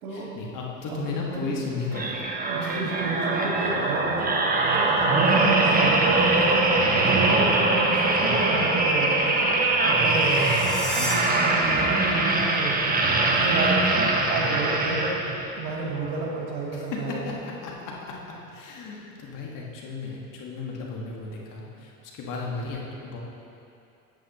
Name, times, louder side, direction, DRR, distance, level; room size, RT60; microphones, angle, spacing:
voice 1, 0.1-2.3 2.6-2.7 8.2-8.4 11.0-11.2 14.2-14.4 16.7-18.1 18.5-23.2, left 4 dB, 45° left, -2 dB, 1.7 m, -35 dB
voice 2, 0.9-1.5 2.5-6.6 7.0-9.5 9.8-10.5 10.9-13.0 13.3-14.0 14.3-15.1 15.6-17.2, right 3 dB, 90° right, -2 dB, 1.7 m, -31 dB
sound 1, 1.9-15.5 16.0-16.2, right 2 dB, 20° right, 0.9 m, -22 dB
sound 2, 10.1-11.1, equal, ahead, 1.5 m, -32 dB
10.5 x 7.6 x 3.0 m, 2.7 s
hypercardioid pair, 95°, 43 cm